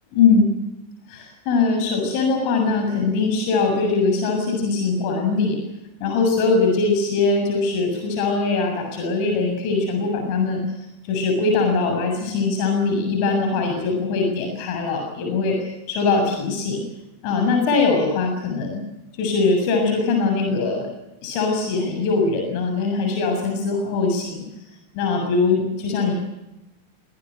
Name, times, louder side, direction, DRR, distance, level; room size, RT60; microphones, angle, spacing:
voice 1, 0.1-0.5 1.1-5.6 6.0-10.6 11.0-16.8 17.2-18.8 19.2-20.9 21.2-24.4 24.9-26.1, left 4 dB, 45° left, 3 dB, 7.0 m, -21 dB
26.5 x 19.0 x 8.2 m, 0.91 s
figure-of-eight pair, 90°, 0 cm